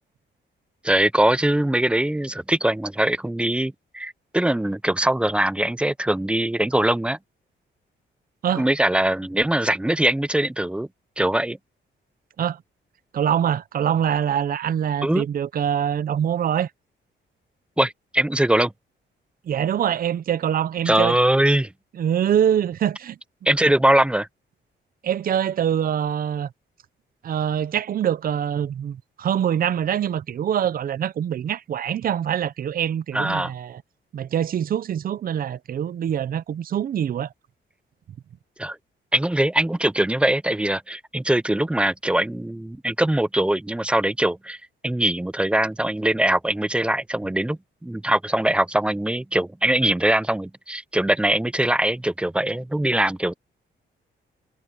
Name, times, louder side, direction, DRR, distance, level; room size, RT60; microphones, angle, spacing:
voice 1, 0.8-7.2 8.6-10.9 11.2-11.6 15.0-15.2 17.8-18.7 20.9-21.7 23.5-24.3 33.1-33.5 38.6-38.8 39.1-44.6 44.8-53.3, right 1 dB, 5° right, 0.4 m, -22 dB
voice 2, 13.1-16.7 19.4-21.2 22.0-23.2 25.0-26.5 27.2-33.8 34.1-37.3, right 9 dB, 45° right, 0.6 m, -24 dB
wide cardioid pair, 180°, 20 cm